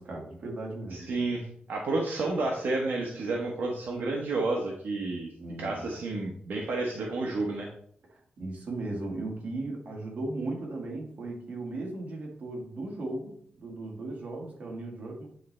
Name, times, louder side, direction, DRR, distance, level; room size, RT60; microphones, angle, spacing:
voice 1, 0.0-1.1 5.4-5.8 8.1-15.3, right 2 dB, 50° right, 0 dB, 1.8 m, -37 dB
voice 2, 0.9-5.3 5.6-7.7, right 2 dB, 70° right, 0 dB, 1.0 m, -30 dB
9.3 x 3.3 x 4.3 m, 0.62 s
wide cardioid pair, 150°, 3 cm